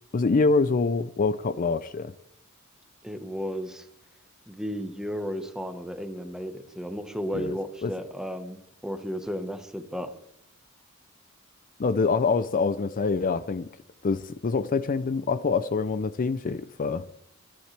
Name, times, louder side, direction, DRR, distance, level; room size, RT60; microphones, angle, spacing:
voice 1, 0.1-2.1 7.3-7.6 7.8-7.9 11.8-13.7 14.0-17.1, left 4 dB, 40° left, 0.4 m, -25 dB
voice 2, 3.0-3.9 4.5-10.1, equal, 5° right, 1.2 m, -34 dB
24.5 x 10.5 x 3.3 m
head